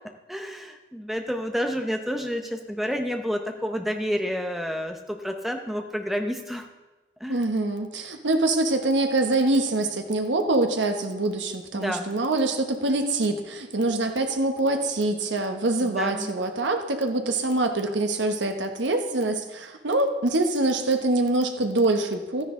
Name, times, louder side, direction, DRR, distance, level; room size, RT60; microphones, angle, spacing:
voice 1, 0.3-6.7 7.2-7.4 11.7-12.1 15.8-16.3, equal, ahead, 4 dB, 0.7 m, -29 dB
voice 2, 7.3-22.4, right 2 dB, 85° right, 5 dB, 1.1 m, -24 dB
12.5 x 10.0 x 3.7 m, 1.1 s
head